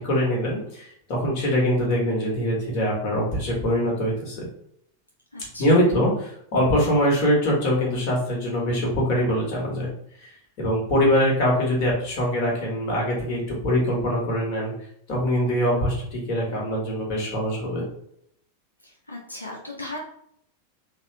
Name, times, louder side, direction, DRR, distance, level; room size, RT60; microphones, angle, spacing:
voice 1, 0.0-4.5 5.6-9.9 10.2-10.3 10.6-14.7 15.1-17.8, equal, 45° left, -3 dB, 1.4 m, -23 dB
voice 2, 5.3-5.7 18.8-20.0, left 2 dB, 85° left, -1 dB, 0.5 m, -37 dB
3.5 x 2.3 x 3.2 m, 0.71 s
figure-of-eight pair, 90°, 0 cm